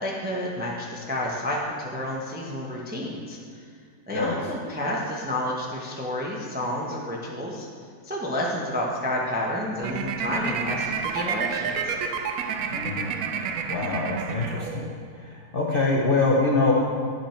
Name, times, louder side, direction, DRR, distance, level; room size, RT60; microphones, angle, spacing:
voice 1, 0.0-3.4 4.1-7.7 8.0-11.9, left 1 dB, 10° right, -3 dB, 0.5 m, -30 dB
sound 1, 9.8-15.1, right 6 dB, 70° right, 1.0 m, -30 dB
voice 2, 12.7-13.1 13.7-14.9 15.2-16.7, left 3 dB, 45° left, -3 dB, 0.7 m, -24 dB
9.6 x 5.5 x 4.4 m, 2.1 s
omnidirectional pair, 1.7 m